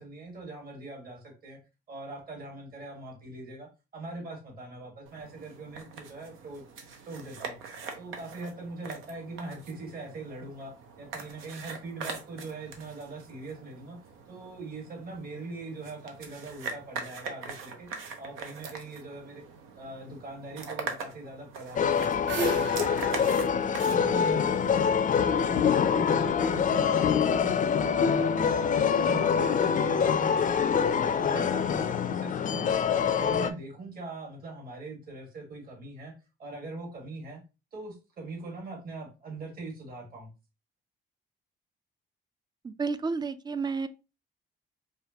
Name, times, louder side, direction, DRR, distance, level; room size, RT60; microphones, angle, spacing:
voice 1, 0.0-1.6 1.9-6.6 7.0-7.6 7.9-14.0 14.3-17.9 18.2-19.4 19.8-23.5 23.8-28.7 29.0-30.6 30.9-32.7 32.9-36.1 36.4-37.4 37.7-40.3, right 2 dB, 50° right, 1.6 m, -41 dB
sound 1, 5.1-24.9, right 5 dB, 90° right, 0.8 m, -43 dB
sound 2, 21.8-33.5, left 7 dB, 40° left, 0.4 m, -25 dB
sound 3, 22.1-24.9, right 5 dB, 65° right, 1.0 m, -36 dB
voice 2, 42.6-43.9, right 4 dB, 20° right, 0.4 m, -31 dB
4.9 x 2.4 x 2.8 m
cardioid pair, 90°, 20 cm